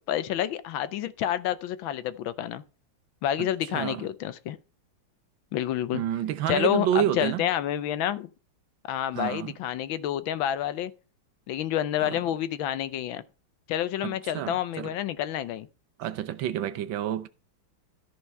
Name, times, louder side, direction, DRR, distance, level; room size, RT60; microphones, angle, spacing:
voice 1, 0.0-2.6 3.2-4.6 5.5-6.0 6.5-8.3 8.9-10.9 11.5-13.2 13.7-15.7, left 11 dB, 80° left, 1.5 m, -29 dB
voice 2, 3.4-4.1 5.9-7.4 9.1-9.5 12.0-12.2 14.0-14.9 16.0-17.3, right 11 dB, 75° right, 1.5 m, -29 dB
13.5 x 4.7 x 5.4 m
omnidirectional pair, 2.1 m